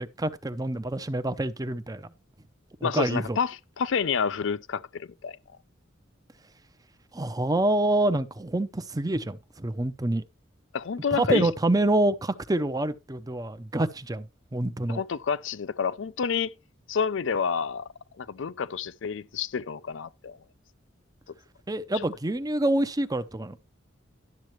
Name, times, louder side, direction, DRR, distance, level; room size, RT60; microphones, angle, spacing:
voice 1, 0.0-2.1 2.8-3.4 7.1-10.2 11.1-15.0 21.7-23.6, right 1 dB, 20° right, 0.6 m, -27 dB
voice 2, 2.8-5.4 10.7-11.5 14.9-16.5 16.9-17.9 18.2-20.4, left 6 dB, 70° left, 0.5 m, -29 dB
12.0 x 7.5 x 3.1 m
head